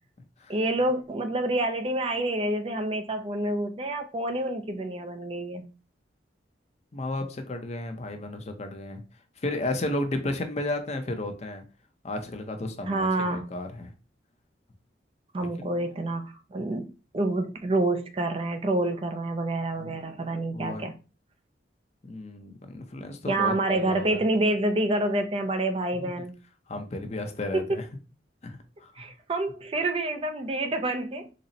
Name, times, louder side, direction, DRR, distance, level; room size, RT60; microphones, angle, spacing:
voice 1, 0.5-5.6 12.9-13.5 15.3-20.9 23.3-26.3 27.5-27.8 29.0-31.3, right 2 dB, 30° right, 0.4 m, -28 dB
voice 2, 6.9-9.0 9.4-11.6 12.0-13.9 15.4-15.7 19.8-20.0 20.5-20.9 22.0-24.2 26.0-26.1 26.7-27.9 28.4-28.9, left 2 dB, 35° left, 0.6 m, -33 dB
4.0 x 2.0 x 3.9 m
head